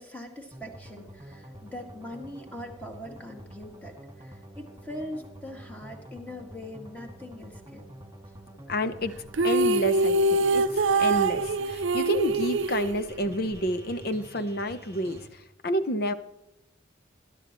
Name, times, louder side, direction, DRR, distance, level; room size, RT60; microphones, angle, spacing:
voice 1, 0.0-7.9, left 1 dB, 10° left, 2 dB, 1.9 m, -42 dB
sound 1, 0.5-15.3, right 1 dB, 15° right, 2.4 m, -47 dB
voice 2, 8.7-9.2 9.4-16.1, equal, 50° left, 11 dB, 0.8 m, -29 dB
sound 2, 9.3-13.6, right 2 dB, 75° right, 0.6 m, -24 dB
21.0 x 11.5 x 3.1 m, 0.89 s
head